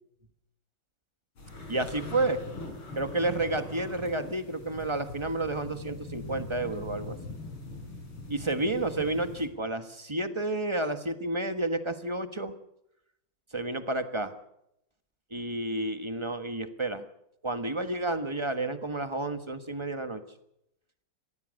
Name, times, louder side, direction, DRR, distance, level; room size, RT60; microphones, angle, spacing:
sound 1, 1.4-9.5, left 2 dB, 90° left, 6.3 m, -41 dB
voice 1, 1.7-2.4 2.9-7.2 8.3-12.5 13.5-14.3 15.3-17.0 17.4-20.2, right 2 dB, 15° right, 9 dB, 1.0 m, -30 dB
25.0 x 19.0 x 6.5 m, 0.80 s
omnidirectional pair, 2.4 m